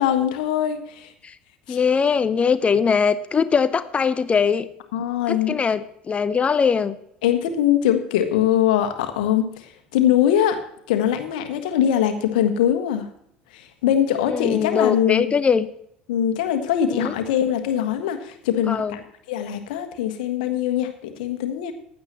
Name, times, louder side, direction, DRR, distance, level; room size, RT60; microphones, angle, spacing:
voice 1, 0.0-1.1 1.7-1.8 4.9-5.6 7.2-10.6 10.9-13.1 13.5-15.3 16.1-21.7, left 10 dB, 60° left, 8 dB, 1.5 m, -22 dB
voice 2, 1.7-4.7 5.3-7.0 14.3-15.7 16.9-17.1 18.7-19.0, left 6 dB, 25° left, 15 dB, 0.6 m, -21 dB
15.5 x 10.5 x 3.0 m, 0.73 s
figure-of-eight pair, 65°, 5 cm